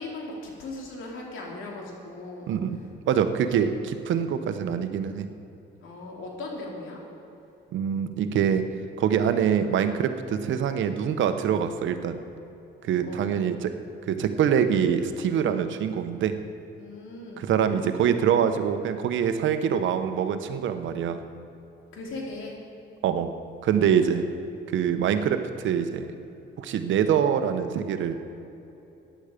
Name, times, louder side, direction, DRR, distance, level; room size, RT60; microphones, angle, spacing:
voice 1, 0.0-2.5 3.2-3.6 4.2-4.3 5.8-7.0 13.0-13.3 16.8-17.5 21.9-22.6 23.9-24.2, left 2 dB, 80° left, -1 dB, 2.9 m, -38 dB
voice 2, 2.5-2.8 3.1-3.7 4.1-5.3 7.7-8.6 9.0-12.2 12.8-13.7 14.1-16.3 17.4-21.2 23.0-23.3 23.6-24.2 24.7-26.1 26.6-28.1, right 8 dB, 75° right, 9 dB, 1.0 m, -24 dB
15.0 x 10.5 x 5.1 m, 3.0 s
cardioid pair, 90°, 20 cm